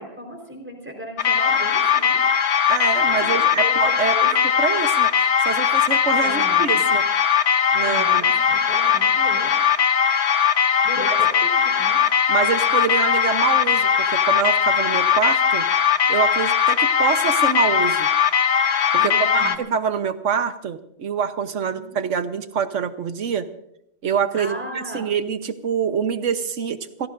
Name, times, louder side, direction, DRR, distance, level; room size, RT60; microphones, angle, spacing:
voice 1, 0.0-2.2 3.1-4.3 6.2-6.9 7.8-9.6 10.8-12.0 18.9-19.6 21.6-21.8 24.4-25.0, right 1 dB, 10° right, 1 dB, 4.3 m, -35 dB
sound 1, 1.2-19.6, left 7 dB, 65° left, 1.2 m, -19 dB
voice 2, 2.7-5.1 5.4-7.1 7.7-8.2 11.1-11.2 12.3-15.7 16.1-18.1 18.9-23.5 24.0-27.1, right 6 dB, 85° right, 10 dB, 1.4 m, -25 dB
28.5 x 17.0 x 2.6 m, 0.79 s
omnidirectional pair, 1.2 m